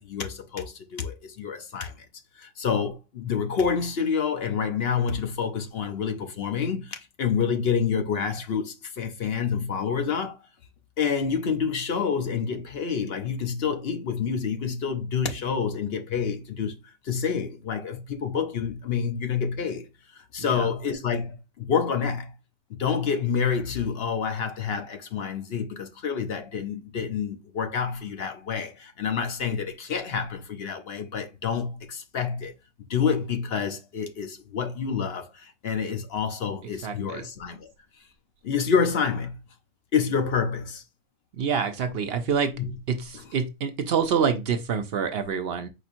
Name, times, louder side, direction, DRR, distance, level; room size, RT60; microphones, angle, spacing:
voice 1, 0.0-2.0 2.4-10.4 11.0-16.7 17.0-19.8 20.1-22.3 22.7-32.5 32.9-37.7 38.4-39.4 39.9-40.8 42.6-42.7 43.1-43.2, left 6 dB, 60° left, 0.9 m, -28 dB
voice 2, 20.4-20.7 36.8-37.2 41.4-42.5 42.9-45.7, right 6 dB, 65° right, 0.8 m, -27 dB
4.8 x 4.3 x 2.5 m
omnidirectional pair, 1.2 m